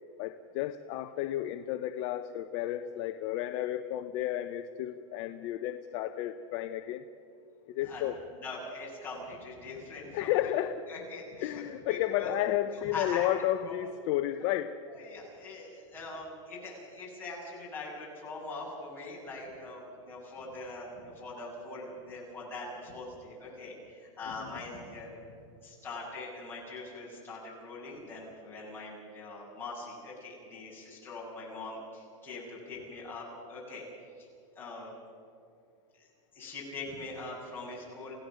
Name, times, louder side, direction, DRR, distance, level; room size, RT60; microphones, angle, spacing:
voice 1, 0.2-7.0 7.7-8.2 10.1-10.8 11.4-14.8 24.4-24.5, left 13 dB, 40° left, 7 dB, 0.7 m, -32 dB
voice 2, 8.4-10.3 10.9-11.6 11.9-12.3 12.7-13.3 13.6-13.8 14.9-25.3 25.6-33.8 34.2-34.3 34.5-34.9 36.0-36.1 36.3-38.1, left 3 dB, 10° left, -6 dB, 7.6 m, -42 dB
29.0 x 16.5 x 6.4 m, 2.5 s
supercardioid pair, 155°, 17 cm